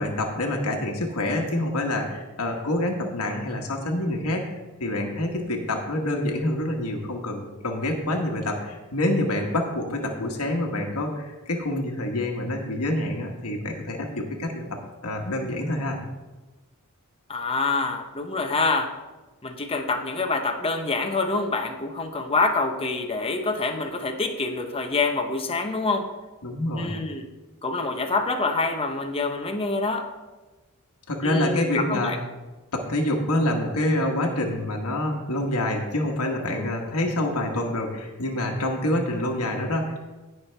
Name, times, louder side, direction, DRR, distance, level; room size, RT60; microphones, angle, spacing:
voice 1, 0.0-4.4 4.8-16.0 26.4-26.9 31.1-32.1 32.7-40.0, left 1 dB, 75° left, 1 dB, 1.3 m, -27 dB
voice 2, 17.3-18.9 19.4-26.1 26.8-27.3 27.6-30.1 31.2-32.2, left 3 dB, 25° left, 5 dB, 0.8 m, -26 dB
17.0 x 5.8 x 3.4 m, 1.2 s
head